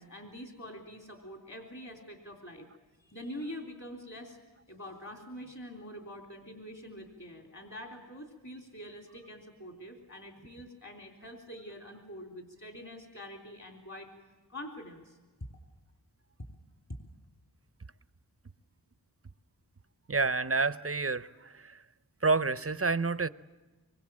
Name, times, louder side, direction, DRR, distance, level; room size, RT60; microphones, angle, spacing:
voice 1, 0.0-2.7 3.0-4.4 4.7-14.1 14.5-15.2, equal, 45° left, 3.6 m, -45 dB
voice 2, 20.1-21.7 22.2-23.3, right 4 dB, 35° right, 0.7 m, -29 dB
25.5 x 23.5 x 7.6 m
wide cardioid pair, 50°, 39 cm